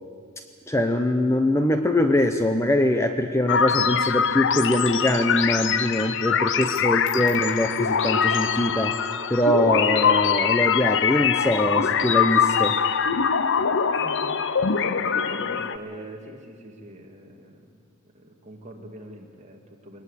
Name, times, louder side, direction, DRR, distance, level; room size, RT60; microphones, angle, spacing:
voice 1, 0.7-9.0 9.3-12.8, left 1 dB, 15° left, 7 dB, 0.8 m, -23 dB
sound 1, 3.5-15.8, left 7 dB, 55° left, 0.7 m, -23 dB
voice 2, 6.3-7.0 14.0-14.4 15.0-17.6 18.1-20.0, right 1 dB, 30° right, 1 dB, 2.4 m, -43 dB
21.5 x 19.0 x 8.3 m, 2.1 s
head